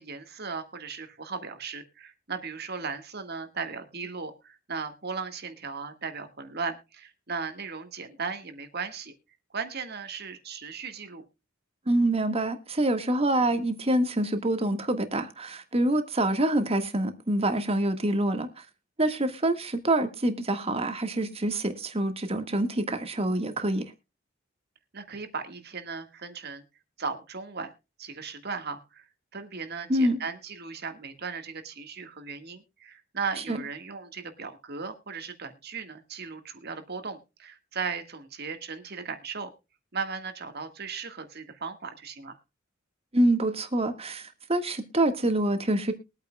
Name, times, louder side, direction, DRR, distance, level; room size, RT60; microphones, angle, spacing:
voice 1, 0.0-9.1 9.5-11.2 24.9-26.6 27.0-27.7 28.0-39.5 39.9-42.4, right 5 dB, 55° right, 1.7 m, -37 dB
voice 2, 11.9-18.6 19.0-23.8 29.9-30.2 33.5-33.6 43.1-45.9, right 1 dB, 30° right, 1.6 m, -26 dB
22.0 x 8.9 x 2.3 m
head